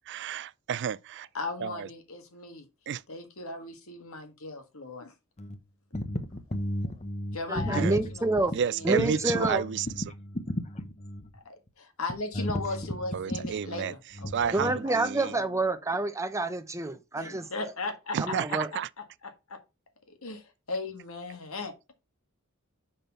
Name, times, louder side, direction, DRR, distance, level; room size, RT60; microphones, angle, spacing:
voice 1, 0.1-1.3 1.6-1.9 2.9-3.0 7.7-7.9 8.5-9.9 13.1-13.9 14.3-15.3 18.1-18.9, right 7 dB, 55° right, 0.4 m, -31 dB
voice 2, 1.3-2.6 3.1-5.1 7.3-9.6 11.3-14.6 14.8-15.6 17.2-18.3 18.7-18.8 19.2-19.6 20.1-21.9, left 3 dB, 70° left, 1.7 m, -38 dB
voice 3, 5.9-8.4 9.3-11.3 12.3-13.9 14.2-14.8, equal, 30° left, 1.1 m, -34 dB
voice 4, 7.5-8.5 8.8-9.6 14.5-17.5 18.2-18.7, right 2 dB, 15° right, 0.8 m, -28 dB
5.9 x 5.3 x 5.7 m
head